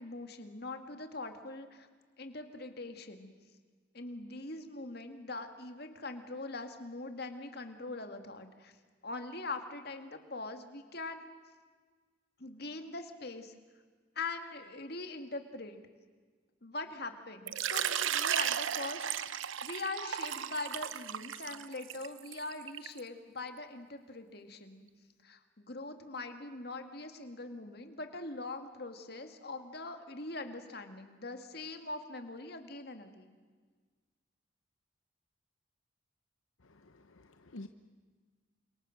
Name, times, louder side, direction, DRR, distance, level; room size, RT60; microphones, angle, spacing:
voice 1, 0.0-1.9 2.2-3.3 3.9-8.7 9.0-11.3 12.4-13.5 14.2-15.8 16.6-24.8 25.2-33.4, left 2 dB, 50° left, 6 dB, 2.1 m, -42 dB
Water / Liquid, 17.5-23.0, right 9 dB, 75° right, 0.8 m, -35 dB
voice 2, 36.6-37.7, left 1 dB, 80° left, 7 dB, 1.0 m, -50 dB
29.5 x 26.5 x 6.5 m, 1.5 s
head